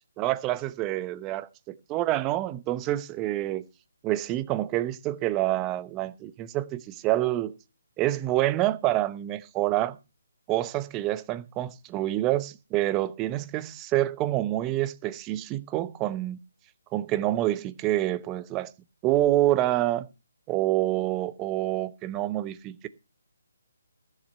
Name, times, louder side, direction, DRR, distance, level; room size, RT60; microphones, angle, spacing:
voice 1, 0.2-3.6 4.0-7.5 8.0-10.0 10.5-16.4 16.9-18.7 19.0-20.0 20.5-22.9, right 15 dB, 20° right, 0.9 m, -27 dB
14.0 x 7.5 x 5.5 m
figure-of-eight pair, 150°, 0 cm